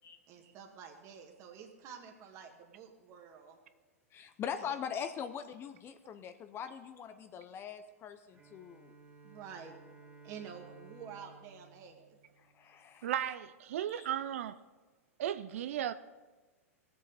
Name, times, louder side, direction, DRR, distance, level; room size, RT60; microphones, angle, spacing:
voice 1, 0.3-3.6 4.6-4.7 9.2-9.8 10.2-12.2 12.7-12.8, right 7 dB, 40° right, 2 dB, 1.9 m, -49 dB
voice 2, 4.1-8.9 12.5-13.1 13.9-14.1, left 8 dB, 30° left, 9 dB, 0.7 m, -42 dB
Bowed string instrument, 8.3-13.0, right 4 dB, 20° right, 1.6 m, -57 dB
voice 3, 13.0-14.6 15.2-15.9, right 11 dB, 65° right, 13 dB, 0.5 m, -35 dB
19.0 x 7.7 x 4.1 m, 1.2 s
hypercardioid pair, 100°, 8 cm